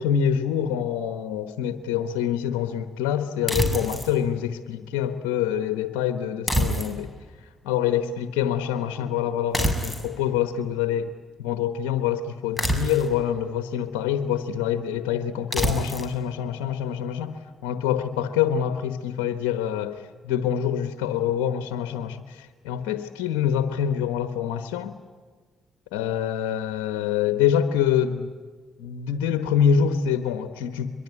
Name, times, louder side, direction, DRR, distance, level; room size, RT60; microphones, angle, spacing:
voice 1, 0.0-7.1 7.6-11.1 11.4-17.3 17.6-25.0 25.9-28.3 28.8-31.0, left 9 dB, 85° left, 9 dB, 1.1 m, -26 dB
sound 1, 3.5-4.1 6.5-7.2 9.5-10.1 12.6-13.2 15.5-16.1, right 1 dB, 10° right, 6.6 m, -26 dB
24.0 x 23.0 x 9.7 m, 1.5 s
hypercardioid pair, 50°, 0 cm